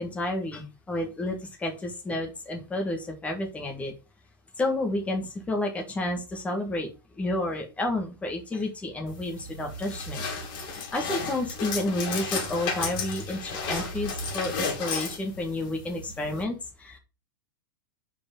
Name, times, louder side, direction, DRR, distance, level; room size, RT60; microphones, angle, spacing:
voice 1, 0.0-3.9 4.6-6.9 7.1-10.2 10.6-17.0, left 1 dB, 10° left, 2 dB, 1.8 m, -30 dB
sound 1, 9.1-16.4, left 4 dB, 40° left, 2.8 m, -33 dB
5.0 x 4.9 x 5.5 m, 0.29 s
hypercardioid pair, 135°, 12 cm